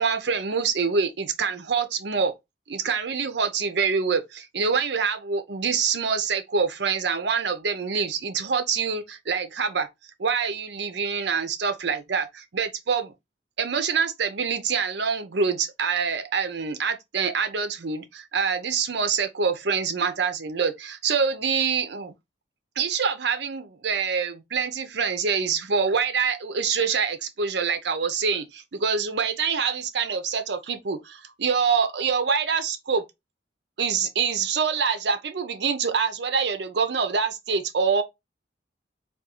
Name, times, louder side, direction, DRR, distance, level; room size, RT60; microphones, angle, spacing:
voice 1, 0.0-2.3 2.7-9.9 10.2-13.1 13.6-22.1 22.8-33.0 33.8-38.0, right 5 dB, 65° right, 0.6 m, -25 dB
3.5 x 2.3 x 2.9 m
head